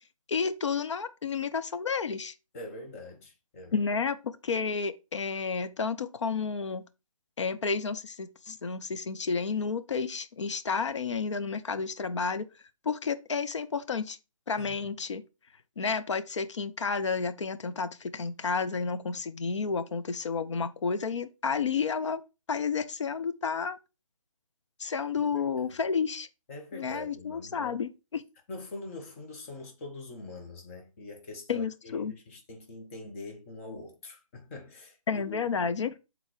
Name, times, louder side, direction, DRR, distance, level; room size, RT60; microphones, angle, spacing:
voice 1, 0.3-2.3 3.7-6.9 7.4-12.5 12.8-14.2 14.5-15.2 15.8-22.2 22.5-23.8 24.8-26.3 26.7-28.2 31.5-32.1 35.1-35.9, left 5 dB, 55° left, 0.7 m, -31 dB
voice 2, 2.5-3.9 14.6-14.9 25.2-25.8 26.5-27.8 28.5-35.8, left 2 dB, 25° left, 1.2 m, -44 dB
6.5 x 4.0 x 4.5 m
figure-of-eight pair, 155°, 18 cm